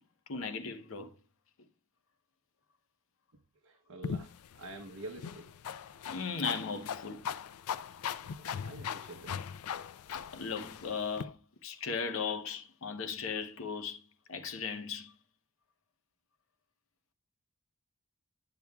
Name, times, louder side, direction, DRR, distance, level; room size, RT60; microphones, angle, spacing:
voice 1, 0.3-1.1 6.1-7.2 10.3-14.0 14.3-15.1, left 5 dB, 65° left, 0.8 m, -37 dB
voice 2, 3.6-5.5 8.4-9.5, right 2 dB, 75° right, 0.8 m, -47 dB
sound 1, 4.0-11.2, left 7 dB, 85° left, 0.4 m, -40 dB
10.5 x 7.0 x 2.3 m
head